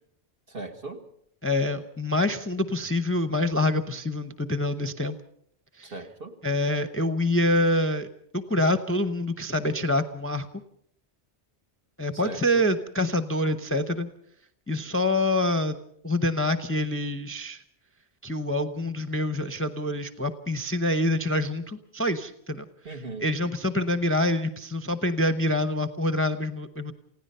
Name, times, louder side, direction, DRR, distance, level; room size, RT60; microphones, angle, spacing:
voice 1, 0.5-1.0 5.8-6.3 12.1-12.7 22.8-23.3, right 3 dB, 55° right, 4 dB, 2.0 m, -38 dB
voice 2, 1.4-5.2 5.8-5.9 6.4-8.1 8.3-10.5 12.0-14.1 14.7-15.8 16.0-17.6 18.2-22.6 23.2-26.9, left 1 dB, 15° left, 8 dB, 0.8 m, -26 dB
29.0 x 16.5 x 5.5 m, 0.70 s
omnidirectional pair, 1.1 m